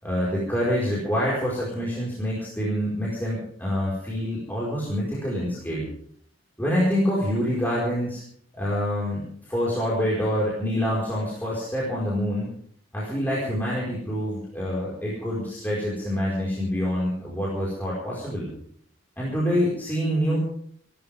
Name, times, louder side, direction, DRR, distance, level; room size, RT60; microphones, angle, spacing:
voice 1, 0.0-5.9 6.6-8.2 8.5-12.5 12.9-18.5 19.2-20.4, equal, 10° left, -6 dB, 5.1 m, -26 dB
28.5 x 13.0 x 3.7 m, 0.62 s
head